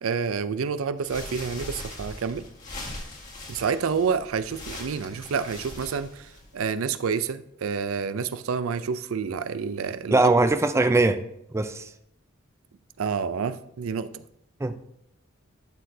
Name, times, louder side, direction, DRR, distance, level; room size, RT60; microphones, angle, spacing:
voice 1, 0.0-2.5 3.5-10.3 13.0-14.2, right 6 dB, 80° right, 0.5 m, -28 dB
sound 1, 1.0-6.7, left 2 dB, 40° left, 1.7 m, -41 dB
voice 2, 10.1-11.2 11.5-11.9 14.6-14.7, right 2 dB, 15° right, 0.4 m, -21 dB
11.5 x 6.5 x 2.7 m
head